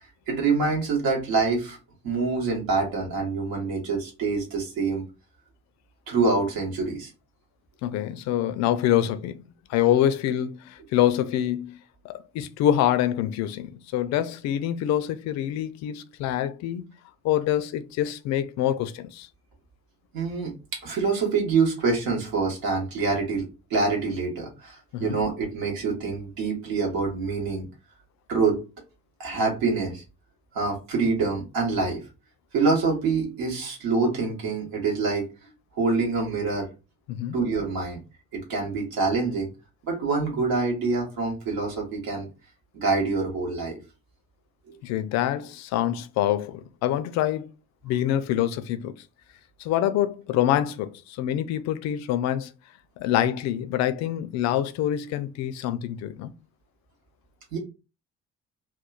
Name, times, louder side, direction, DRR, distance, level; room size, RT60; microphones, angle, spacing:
voice 1, 0.3-1.8 2.0-5.0 6.1-7.1 20.1-23.4 23.7-27.7 28.3-28.6 29.2-30.0 30.5-32.0 32.5-35.2 35.7-36.7 37.3-38.0 38.3-39.5 39.8-42.3 42.7-43.8 44.7-44.8 57.5-57.6, right 4 dB, 70° right, 1.2 m, -26 dB
voice 2, 7.8-9.4 9.7-11.8 12.0-16.8 17.2-19.3 24.9-25.2 37.1-37.4 44.8-47.5 47.8-48.9 49.6-52.5 53.0-56.3, left 11 dB, 50° left, 0.4 m, -26 dB
2.9 x 2.2 x 2.3 m
figure-of-eight pair, 45°, 36 cm